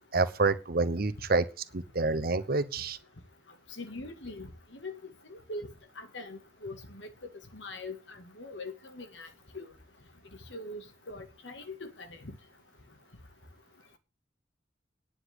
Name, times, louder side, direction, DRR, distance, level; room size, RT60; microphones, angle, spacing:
voice 1, 0.1-1.5 1.7-3.0, right 3 dB, 50° right, 0.9 m, -27 dB
voice 2, 3.7-5.7 6.0-7.1 7.5-9.3 9.5-9.7 10.5-12.3, left 2 dB, 75° left, 2.1 m, -42 dB
10.0 x 6.7 x 8.0 m
head